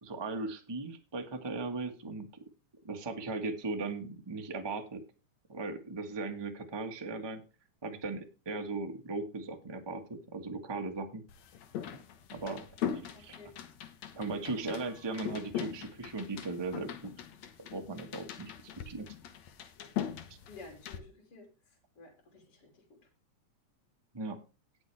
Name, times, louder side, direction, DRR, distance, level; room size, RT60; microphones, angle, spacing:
voice 1, 0.0-2.3 2.8-5.0 5.5-7.4 7.8-11.2 12.3-12.7 13.2-13.4 14.1-17.1 17.6-18.5 18.8-19.1 24.1-24.4, right 3 dB, 20° right, 5 dB, 0.6 m, -38 dB
sound 1, 11.3-21.0, left 9 dB, 70° left, 2.3 m, -41 dB
voice 2, 13.1-13.5 20.5-23.1, left 3 dB, 50° left, 1 dB, 3.8 m, -53 dB
18.5 x 6.2 x 3.4 m, 0.31 s
omnidirectional pair, 3.4 m